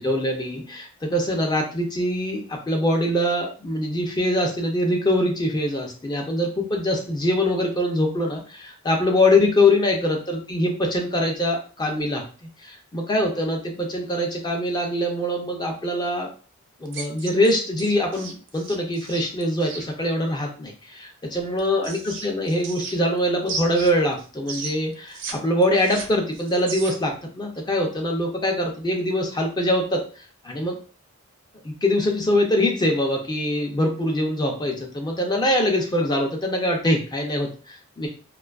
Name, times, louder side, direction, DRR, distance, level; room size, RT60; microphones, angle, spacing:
voice 1, 0.0-12.2 12.6-16.3 16.8-30.8 31.6-38.1, left 1 dB, 20° left, 2 dB, 0.4 m, -23 dB
kissy sounds, 16.9-19.9 21.3-23.2 23.5-25.3 25.6-27.1, right 4 dB, 55° right, 0.4 m, -35 dB
2.5 x 2.3 x 2.2 m, 0.38 s
head